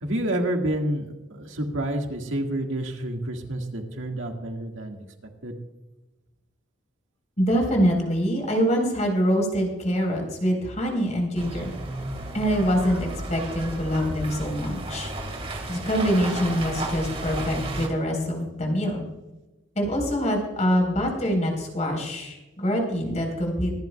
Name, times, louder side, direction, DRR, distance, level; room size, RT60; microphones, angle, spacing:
voice 1, 0.0-5.0 5.4-5.6, right 1 dB, 90° right, 3 dB, 1.8 m, -29 dB
voice 2, 7.4-11.7 12.3-15.1 15.7-19.1 19.8-23.7, equal, 35° left, 1 dB, 4.0 m, -25 dB
sound 1, 11.3-17.9, right 1 dB, 30° right, 2.1 m, -33 dB
25.0 x 11.5 x 2.3 m, 1.1 s
head